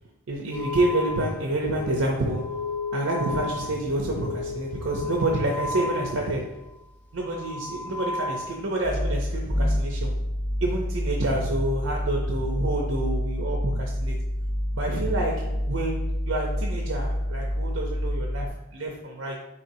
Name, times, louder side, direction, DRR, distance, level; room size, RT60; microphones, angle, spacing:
voice 1, 0.3-2.6 2.9-6.6 7.1-10.2 10.6-14.2 14.7-19.4, right 2 dB, 80° right, 0 dB, 0.6 m, -28 dB
sound 1, 0.5-6.8 7.1-18.5, left 1 dB, 10° left, 0.3 m, -29 dB
4.3 x 4.2 x 2.7 m, 0.91 s
head